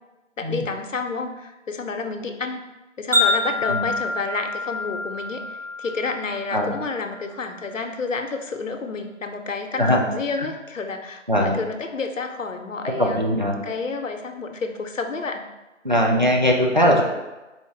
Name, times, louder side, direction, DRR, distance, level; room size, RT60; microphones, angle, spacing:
voice 1, 0.4-2.6 3.0-5.4 5.8-13.3 13.6-15.4, left 4 dB, 75° left, 6 dB, 0.6 m, -30 dB
Wind chime, 3.1-7.4, left 2 dB, 85° right, 1.1 m, -27 dB
voice 2, 9.8-10.1 11.3-11.6 12.9-13.6 15.8-17.0, equal, 40° right, 0 dB, 0.4 m, -20 dB
4.2 x 2.4 x 3.9 m, 1.1 s
figure-of-eight pair, 165°, 38 cm